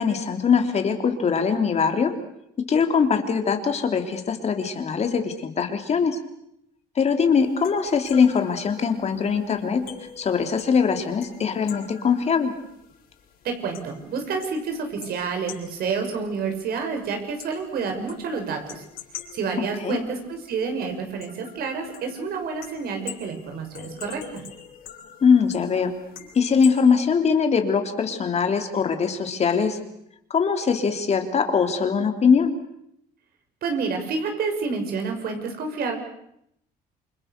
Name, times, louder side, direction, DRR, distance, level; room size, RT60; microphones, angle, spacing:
voice 1, 0.0-2.1 2.7-6.2 6.9-9.8 10.2-12.5 19.8-20.0 25.2-25.9 26.3-29.8 30.3-32.5, left 6 dB, 40° left, 5 dB, 3.4 m, -22 dB
sound 1, 7.3-26.8, left 8 dB, 60° left, 7.1 m, -45 dB
voice 2, 13.4-18.8 19.3-24.4 33.6-36.0, right 5 dB, 65° right, 5 dB, 6.5 m, -29 dB
28.5 x 25.0 x 6.8 m, 0.76 s
cardioid pair, 110°, 17 cm